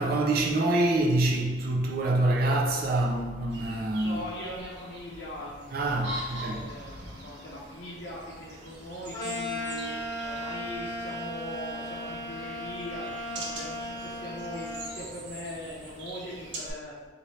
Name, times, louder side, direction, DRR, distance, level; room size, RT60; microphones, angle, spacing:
voice 1, 0.0-4.3 5.7-6.7, right 2 dB, 55° right, 0.5 m, -26 dB
sound 1, 3.5-16.7, right 1 dB, 90° right, 0.7 m, -43 dB
voice 2, 4.0-5.8 6.2-16.9, left 1 dB, 65° left, 0.6 m, -41 dB
sound 2, 9.1-15.0, left 1 dB, 20° left, 0.8 m, -36 dB
4.0 x 2.6 x 3.2 m
head